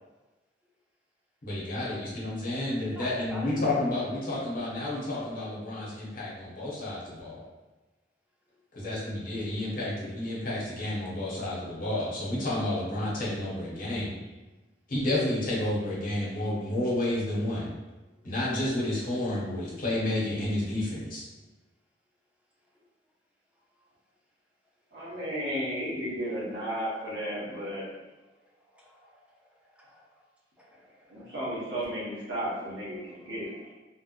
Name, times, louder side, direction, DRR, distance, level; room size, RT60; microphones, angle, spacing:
voice 1, 1.4-7.4 8.7-14.1 14.9-17.7 18.2-21.2, left 1 dB, 50° left, -6 dB, 1.2 m, -30 dB
voice 2, 2.9-3.5 8.8-9.0 11.1-11.2 14.2-14.3 16.4-16.5 18.2-18.3 25.6-26.2 28.7-30.2 30.6-31.3 32.3-32.4 32.9-33.7, left 1 dB, 5° right, -4 dB, 0.6 m, -49 dB
voice 3, 24.9-27.9 31.1-33.5, equal, 70° right, -9 dB, 1.3 m, -33 dB
3.4 x 3.0 x 2.5 m, 1.1 s
head